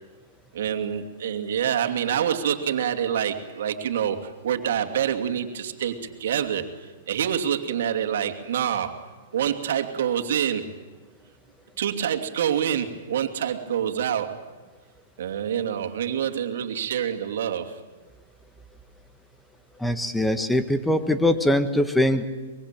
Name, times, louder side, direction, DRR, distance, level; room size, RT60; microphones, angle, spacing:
voice 1, 0.5-6.7 7.1-9.1 9.3-10.7 11.8-14.5 15.2-17.8, right 9 dB, 70° right, 6 dB, 2.7 m, -26 dB
voice 2, 19.8-22.2, left 1 dB, 5° left, 9 dB, 1.7 m, -22 dB
24.5 x 22.5 x 9.1 m, 1.3 s
hypercardioid pair, 125°, 0 cm